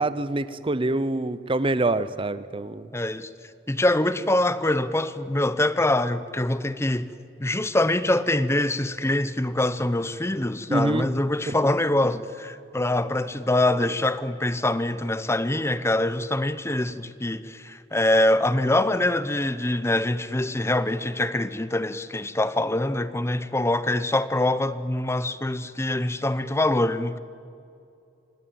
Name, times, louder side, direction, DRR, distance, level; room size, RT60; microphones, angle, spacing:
voice 1, 0.0-2.9 10.7-11.1, right 2 dB, 30° right, 0.7 m, -25 dB
voice 2, 2.9-3.3 3.7-7.1 7.4-27.2, left 1 dB, 15° left, 0.8 m, -24 dB
26.0 x 18.5 x 8.8 m
head